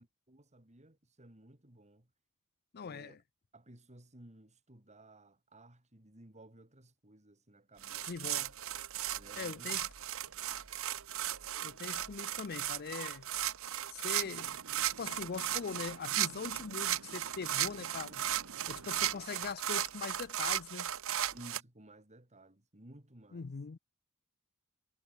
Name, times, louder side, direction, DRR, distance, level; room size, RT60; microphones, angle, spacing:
voice 1, 0.0-2.1 2.8-3.2 3.5-8.4 9.1-9.8 21.3-23.5, right 1 dB, 30° right, 3.6 m, -57 dB
voice 2, 2.7-3.2 8.1-8.5 9.4-9.9 11.6-13.3 13.9-14.6 15.0-18.2 18.7-20.9 23.3-23.8, left 5 dB, 45° left, 0.5 m, -42 dB
sound 1, 7.8-21.6, right 12 dB, 70° right, 1.6 m, -36 dB
sound 2, 14.2-19.3, right 3 dB, 85° right, 1.7 m, -54 dB
head